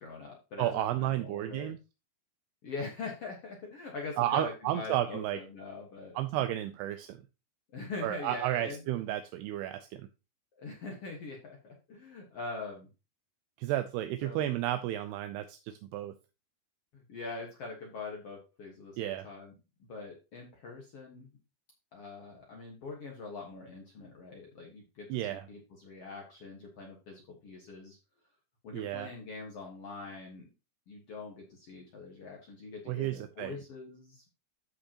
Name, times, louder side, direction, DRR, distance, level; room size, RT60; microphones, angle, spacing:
voice 1, 0.0-1.7 2.6-6.2 7.7-8.8 10.6-12.9 14.2-14.5 16.9-19.5 19.8-21.4 21.9-28.0 28.6-30.5 30.9-34.2, left 3 dB, 60° left, -1 dB, 1.5 m, -43 dB
voice 2, 0.6-1.8 4.2-5.4 6.2-7.2 8.0-10.1 13.6-16.1 19.0-19.3 25.1-25.5 28.7-29.1 32.9-33.6, right 13 dB, 80° right, 9 dB, 2.6 m, -32 dB
14.0 x 5.1 x 2.9 m, 0.29 s
omnidirectional pair, 4.8 m